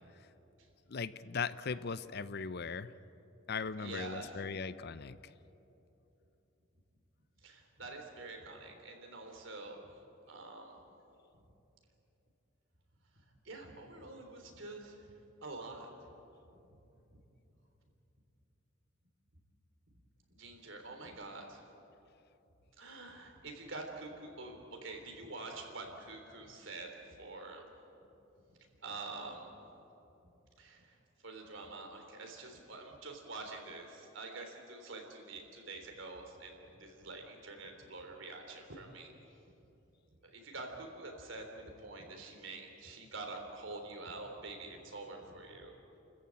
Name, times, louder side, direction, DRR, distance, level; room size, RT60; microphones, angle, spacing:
voice 1, 0.9-2.9 3.5-5.2, left 5 dB, 55° left, 15 dB, 0.6 m, -38 dB
voice 2, 3.8-4.4 7.4-9.8 10.3-10.8 13.4-15.1 15.4-16.1 20.4-21.6 22.8-27.6 28.8-29.5 30.6-30.9 31.2-39.1 40.3-45.8, right 3 dB, 70° right, 3 dB, 3.6 m, -46 dB
29.5 x 14.5 x 8.9 m, 3.0 s
head